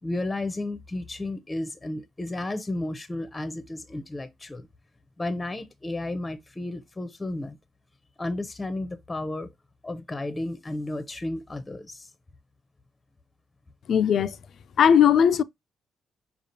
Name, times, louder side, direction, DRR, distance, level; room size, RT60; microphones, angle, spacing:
voice 1, 0.0-4.7 5.2-7.6 8.2-9.5 9.8-12.1, left 2 dB, 20° left, 0.6 m, -33 dB
voice 2, 13.9-14.4 14.8-15.4, left 8 dB, 60° left, 0.3 m, -18 dB
5.0 x 2.4 x 2.7 m
cardioid pair, 90°, 0 cm